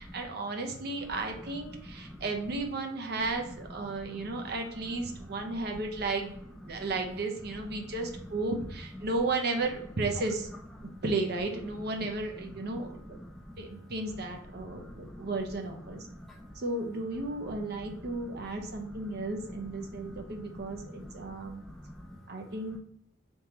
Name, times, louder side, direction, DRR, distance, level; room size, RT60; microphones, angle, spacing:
voice 1, 0.0-6.4 6.6-10.5 11.0-13.2 13.6-16.1 16.6-21.6 22.3-22.8, right 2 dB, 55° right, 3 dB, 0.6 m, -34 dB
voice 2, 3.8-4.5 5.1-5.6 6.6-6.8 7.7-7.9 10.8-11.0 12.6-13.7 14.5-15.4 15.9-16.5 17.4-17.8 18.2-19.6 19.9-22.2 22.7-22.8, equal, ahead, 0 dB, 0.3 m, -47 dB
3.6 x 3.0 x 2.8 m, 0.72 s
head